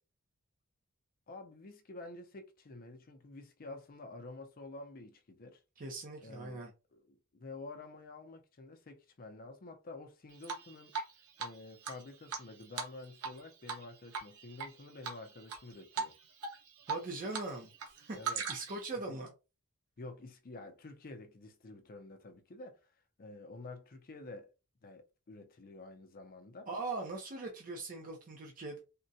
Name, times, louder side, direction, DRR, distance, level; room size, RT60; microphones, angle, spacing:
voice 1, 1.3-5.6 6.2-6.6 6.9-10.9 11.4-16.1 18.1-18.4 19.1-19.2 20.0-22.9 23.2-24.5 24.8-26.7, left 2 dB, 40° left, 0.5 m, -49 dB
voice 2, 5.8-6.7 16.9-19.3 26.7-28.8, right 3 dB, 40° right, 0.6 m, -41 dB
Drip, 10.4-11.1 11.4-11.5 11.8-13.4 13.7-13.8 14.1-14.7 15.0-15.6 15.9-16.1 16.4-17.5 17.7-18.9, right 5 dB, 85° right, 0.8 m, -38 dB
3.6 x 2.1 x 2.6 m
head